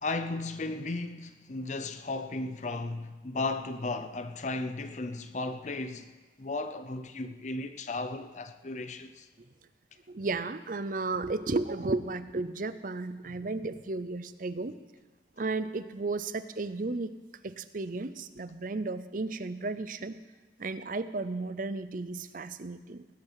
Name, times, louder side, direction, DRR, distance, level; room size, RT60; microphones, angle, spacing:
voice 1, 0.0-6.1 6.4-9.3, left 2 dB, 40° left, 0.6 m, -35 dB
voice 2, 10.1-14.7 15.4-17.2 17.4-20.2 20.6-23.1, right 3 dB, 45° right, 0.6 m, -34 dB
19.0 x 9.9 x 5.7 m
head